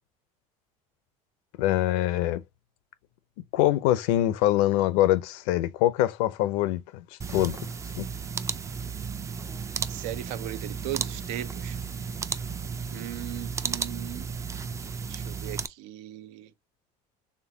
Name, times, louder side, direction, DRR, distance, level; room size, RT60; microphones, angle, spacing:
voice 1, 1.6-2.4 3.5-7.6 8.0-8.1, left 14 dB, 85° left, 0.6 m, -24 dB
sound 1, 7.2-15.7, right 6 dB, 20° right, 0.3 m, -34 dB
voice 2, 9.9-11.8 12.9-14.3 15.1-16.5, right 14 dB, 85° right, 0.6 m, -37 dB
4.4 x 3.3 x 2.7 m
cardioid pair, 120°, 16 cm